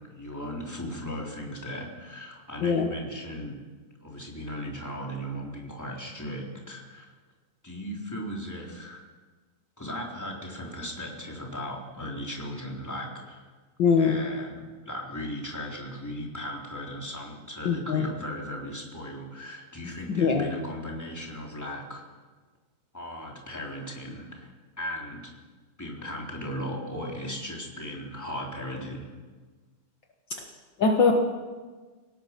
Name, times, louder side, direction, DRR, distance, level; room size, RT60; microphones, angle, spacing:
voice 1, 0.1-3.6 4.0-7.1 7.6-9.0 9.8-13.4 14.0-22.0 22.9-24.5 24.8-25.3 25.8-29.1, equal, 5° left, -2 dB, 3.2 m, -37 dB
voice 2, 13.8-14.2 17.6-18.1 20.1-20.5 30.8-31.1, left 5 dB, 65° left, 3 dB, 1.1 m, -22 dB
27.0 x 17.5 x 6.0 m, 1.4 s
omnidirectional pair, 4.3 m